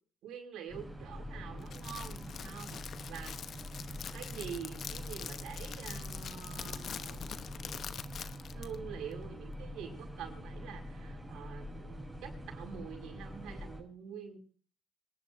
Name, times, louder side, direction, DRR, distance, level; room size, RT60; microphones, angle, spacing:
voice 1, 0.2-2.8 3.1-3.5 4.1-7.5 8.5-14.4, right 7 dB, 80° right, 1 dB, 5.8 m, -46 dB
sound 1, 0.7-13.8, equal, 15° right, 7.7 m, -44 dB
Crackle, 1.6-8.8, left 8 dB, 65° left, 1.0 m, -44 dB
26.0 x 10.5 x 2.7 m, 0.42 s
supercardioid pair, 65°, 0 cm